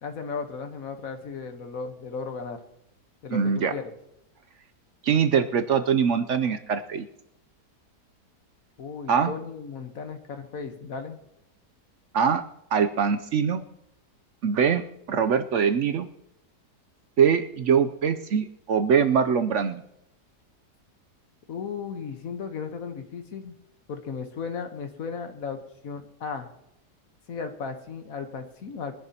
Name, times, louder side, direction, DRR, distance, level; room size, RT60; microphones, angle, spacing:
voice 1, 0.0-2.6 3.2-3.9 8.8-11.2 21.5-23.6 23.9-25.6 25.8-26.5 27.3-28.9, left 5 dB, 60° left, 7 dB, 1.5 m, -35 dB
voice 2, 3.3-3.7 5.0-7.1 9.1-9.3 12.1-12.4 12.7-13.6 14.4-14.8 15.1-16.1 17.2-19.8, right 7 dB, 65° right, 9 dB, 0.7 m, -23 dB
22.5 x 11.0 x 2.8 m, 0.81 s
omnidirectional pair, 1.8 m